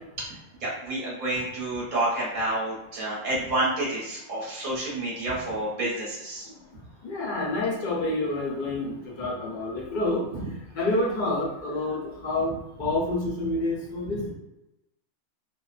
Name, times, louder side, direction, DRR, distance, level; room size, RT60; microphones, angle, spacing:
voice 1, 0.3-6.5 9.2-9.3 10.3-10.5 14.0-14.3, right 1 dB, 45° right, -6 dB, 0.8 m, -29 dB
voice 2, 7.0-10.2 10.8-12.5 12.8-14.3, left 2 dB, 60° left, -2 dB, 0.5 m, -28 dB
2.5 x 2.1 x 2.4 m, 0.92 s
omnidirectional pair, 1.5 m